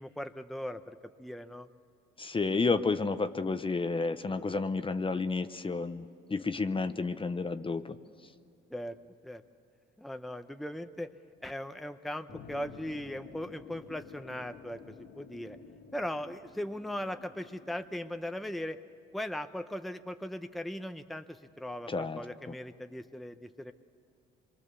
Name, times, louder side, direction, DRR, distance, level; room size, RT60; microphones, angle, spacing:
voice 1, 0.0-1.7 8.7-9.0 9.2-9.4 10.0-11.1 11.4-14.8 15.1-15.6 15.9-18.8 19.1-23.7, left 1 dB, ahead, 8 dB, 0.8 m, -39 dB
voice 2, 2.2-8.0 21.9-22.2 22.5-22.6, left 4 dB, 25° left, 10 dB, 0.8 m, -31 dB
sound 1, 12.3-18.6, left 5 dB, 65° left, 1.8 m, -52 dB
27.0 x 22.5 x 6.9 m, 2.4 s
cardioid pair, 90°, 20 cm